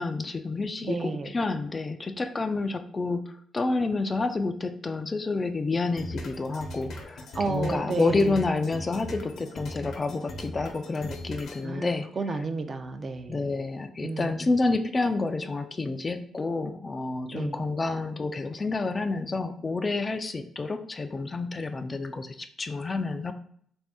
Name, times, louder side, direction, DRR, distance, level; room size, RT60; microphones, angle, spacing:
voice 1, 0.0-12.1 13.3-23.3, left 3 dB, 30° left, 9 dB, 0.3 m, -29 dB
voice 2, 0.8-1.3 7.3-8.4 11.6-13.5 14.0-14.4 17.3-17.7, right 4 dB, 40° right, 7 dB, 0.4 m, -32 dB
sound 1, 6.0-11.6, equal, 70° left, 0.7 m, -40 dB
3.3 x 2.6 x 3.5 m, 0.63 s
cardioid pair, 90°, 0 cm